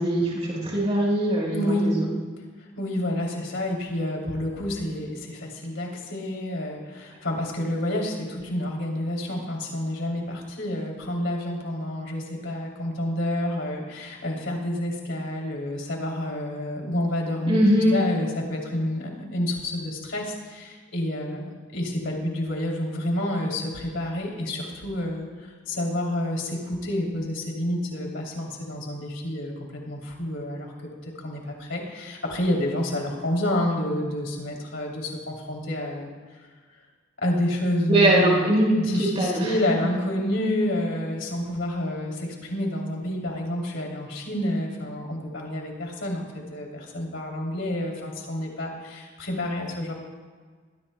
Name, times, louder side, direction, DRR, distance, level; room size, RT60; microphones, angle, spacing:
voice 1, 0.0-2.1 17.5-18.0 37.9-39.5, right 1 dB, 35° right, -4 dB, 4.6 m, -21 dB
voice 2, 1.5-1.9 2.8-17.6 17.9-30.7 31.0-36.1 37.2-38.5 38.8-49.9, left 1 dB, 70° left, -1 dB, 3.0 m, -29 dB
22.0 x 16.0 x 2.2 m, 1.5 s
head